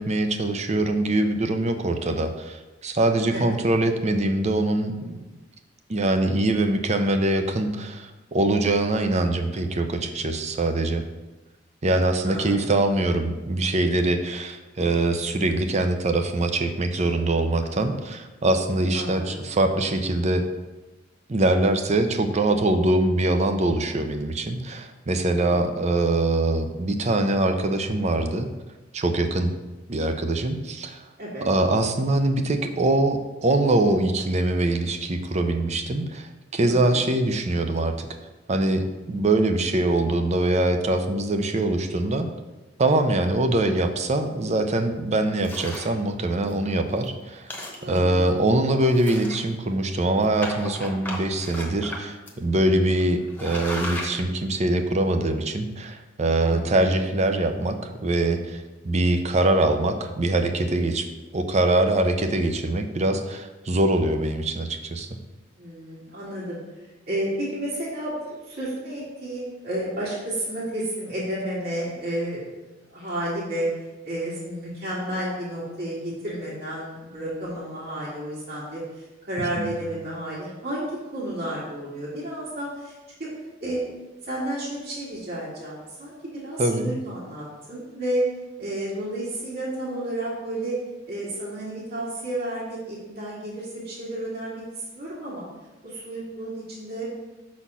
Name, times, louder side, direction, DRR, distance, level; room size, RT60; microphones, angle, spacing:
voice 1, 0.0-5.2 5.9-11.0 11.8-20.4 21.3-28.5 28.9-29.5 29.9-31.0 31.5-38.1 38.5-42.3 42.8-47.5 47.9-65.1 79.6-79.7 86.6-86.9, right 2 dB, 35° right, 7 dB, 0.6 m, -23 dB
voice 2, 12.2-12.6 18.9-19.4 25.3-25.7 31.2-31.5 36.6-37.0 47.8-48.3 56.5-56.9 65.6-66.6 67.1-72.5 72.9-73.7 74.0-82.9 83.2-83.3 83.6-83.9 84.3-88.2 88.6-90.8 91.1-94.6 95.0-95.4 95.8-97.0, right 1 dB, 55° right, -7 dB, 2.2 m, -31 dB
sound 1, 45.4-46.0 46.5-46.6 46.9-47.1 47.4-48.2 48.9-49.7 50.4-52.0 52.3-52.4 52.9-53.0 53.3-54.2, left 1 dB, 10° left, 1.0 m, -34 dB
6.0 x 4.3 x 5.5 m, 1.1 s
head